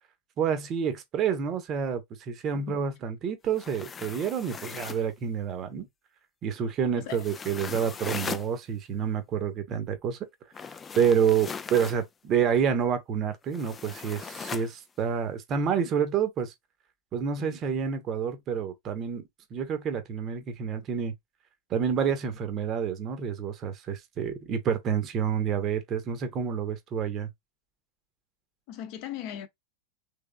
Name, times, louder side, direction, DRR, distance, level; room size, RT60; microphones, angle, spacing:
voice 1, 0.4-5.9 6.4-10.2 10.9-16.5 17.1-19.2 19.5-21.1 21.7-27.3, right 7 dB, 30° right, 0.9 m, -28 dB
sound 1, 3.5-5.1 7.1-8.5 10.5-12.0 13.5-14.7, left 6 dB, 20° left, 0.3 m, -39 dB
voice 2, 28.7-29.5, left 10 dB, 45° left, 0.8 m, -38 dB
3.5 x 3.3 x 2.2 m
figure-of-eight pair, 90°, 0 cm